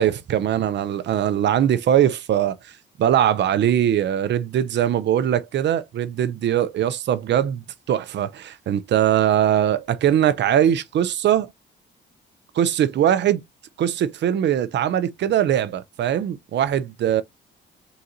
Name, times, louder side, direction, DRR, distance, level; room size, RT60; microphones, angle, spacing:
voice 1, 0.0-2.6 3.0-11.5 12.6-13.4 13.8-17.2, right 10 dB, 60° right, 0.6 m, -21 dB
3.9 x 2.8 x 3.7 m
cardioid pair, 90°, 20 cm